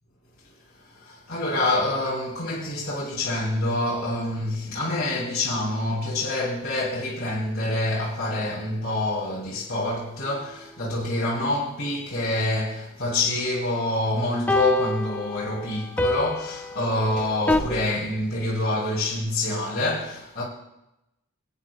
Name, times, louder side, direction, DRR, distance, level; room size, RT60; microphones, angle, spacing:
voice 1, 0.8-20.4, left 2 dB, 50° left, 3.0 m, -26 dB
sound 1, 10.2-10.3 14.5-17.6, left 2 dB, 10° left, 0.4 m, -27 dB
sound 2, 13.3-13.9 14.2-14.3 15.0-15.1 15.9-16.1 16.5-16.6 17.2-18.3, equal, 40° right, 5.2 m, -39 dB
23.5 x 9.2 x 2.4 m
head